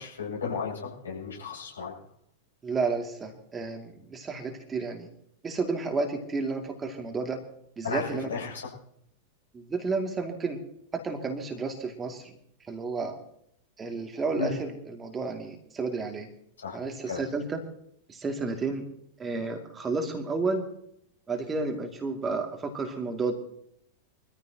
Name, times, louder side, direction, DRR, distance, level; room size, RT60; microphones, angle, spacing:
voice 1, 0.0-1.9 7.8-8.7 14.4-14.5 16.6-16.8 17.1-17.2, left 5 dB, 70° left, -3 dB, 7.9 m, -34 dB
voice 2, 2.6-5.1 5.4-7.4 7.8-8.3 9.5-10.6 10.9-12.3 12.7-13.2 13.8-16.3 16.7-17.6 18.1-18.8 19.2-20.7 21.3-23.3, right 4 dB, 20° right, 3 dB, 2.6 m, -31 dB
24.0 x 14.5 x 3.0 m, 0.70 s
figure-of-eight pair, 90°, 0 cm